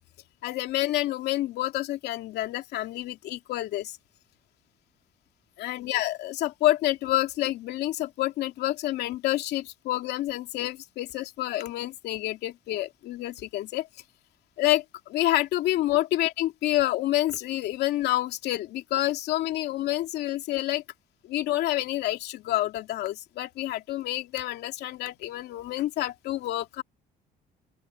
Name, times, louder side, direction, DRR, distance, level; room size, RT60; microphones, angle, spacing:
voice 1, 0.4-4.0 5.6-13.9 14.6-20.8 21.2-26.8, left 15 dB, 80° left, 2.6 m, -28 dB
open air
cardioid pair, 110°, 17 cm